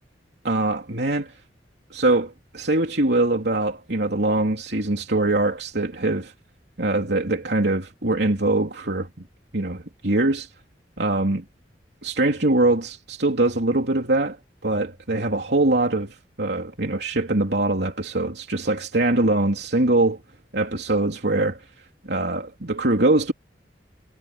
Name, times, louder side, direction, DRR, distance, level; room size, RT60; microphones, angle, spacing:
voice 1, 0.4-1.3 1.9-6.3 6.8-9.1 9.5-10.5 11.0-11.4 12.0-14.4 14.6-20.2 20.5-21.6 22.1-23.3, right 2 dB, 65° right, 3.5 m, -22 dB
head